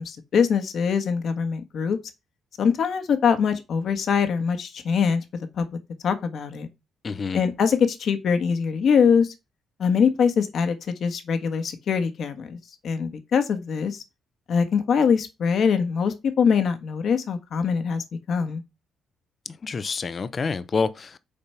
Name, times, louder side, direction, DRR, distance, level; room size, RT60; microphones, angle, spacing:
voice 1, 0.0-2.0 2.6-5.2 5.5-5.6 6.0-6.7 7.3-9.3 9.8-12.6 12.8-14.0 14.5-18.6, left 6 dB, 60° left, 1.4 m, -23 dB
voice 2, 7.0-7.4 19.6-21.4, left 4 dB, 40° left, 0.7 m, -28 dB
6.8 x 4.4 x 5.7 m
cardioid pair, 90°, 0 cm